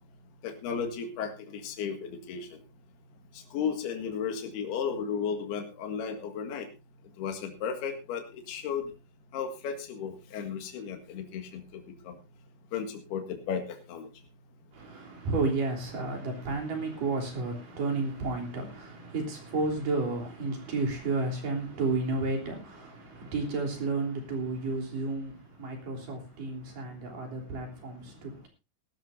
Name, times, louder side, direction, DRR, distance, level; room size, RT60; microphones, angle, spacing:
voice 1, 0.4-2.6 3.3-6.7 7.2-8.9 9.3-12.2 12.7-14.1, left 7 dB, 70° left, 5 dB, 3.8 m, -34 dB
voice 2, 14.7-28.5, right 3 dB, 55° right, 2 dB, 4.9 m, -32 dB
20.5 x 12.5 x 2.6 m, 0.26 s
omnidirectional pair, 4.8 m